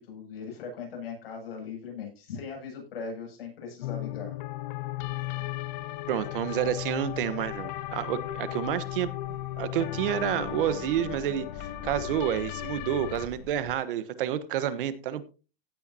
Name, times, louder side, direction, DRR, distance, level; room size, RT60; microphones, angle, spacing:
voice 1, 0.0-4.4, left 5 dB, 75° left, 1 dB, 7.7 m, -39 dB
sound 1, 3.8-13.3, left 15 dB, 50° left, 0.8 m, -36 dB
sound 2, 5.0-13.7, left 2 dB, 20° left, 2.7 m, -48 dB
voice 2, 6.1-9.1 9.6-15.3, right 10 dB, 60° right, 14 dB, 1.3 m, -29 dB
16.0 x 8.8 x 2.9 m, 0.32 s
supercardioid pair, 155°, 30 cm